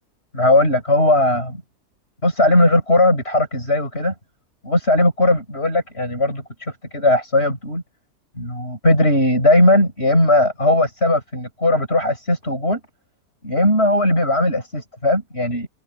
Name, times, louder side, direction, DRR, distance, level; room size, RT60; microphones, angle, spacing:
voice 1, 0.3-1.6 2.2-4.1 4.6-7.8 8.4-12.8 13.4-15.7, left 1 dB, 40° left, 8.0 m, -18 dB
omnidirectional pair, 1.6 m